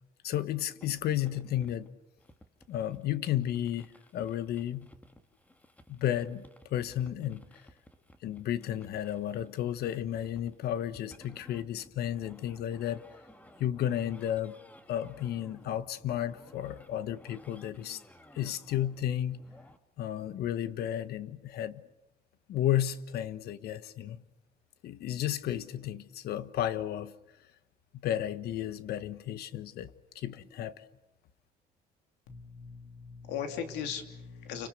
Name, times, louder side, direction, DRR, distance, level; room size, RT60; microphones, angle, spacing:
voice 1, 0.2-1.9 2.7-4.9 5.9-7.4 8.2-13.0 13.6-14.6 14.9-18.0 18.3-19.4 20.0-21.8 22.5-24.2 24.8-27.1 28.0-30.8, left 11 dB, 70° left, 1.4 m, -33 dB
sound 1, 0.8-19.8, left 1 dB, 10° left, 1.8 m, -57 dB
voice 2, 32.3-34.7, left 8 dB, 90° left, 3.0 m, -38 dB
29.5 x 25.5 x 6.8 m
cardioid pair, 110°, 17 cm